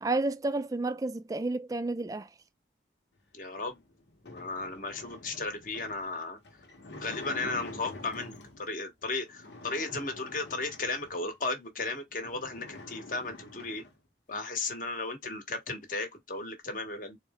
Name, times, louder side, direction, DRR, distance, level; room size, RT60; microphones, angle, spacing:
voice 1, 0.0-2.3, right 2 dB, 20° right, 0.3 m, -31 dB
voice 2, 3.3-3.8 4.2-6.4 6.9-13.8 14.3-17.2, left 3 dB, 50° left, 1.1 m, -35 dB
sound 1, 3.5-8.7 9.3-11.3 11.8-11.9 12.1-14.0, left 2 dB, 85° left, 1.0 m, -46 dB
4.1 x 2.1 x 3.5 m
head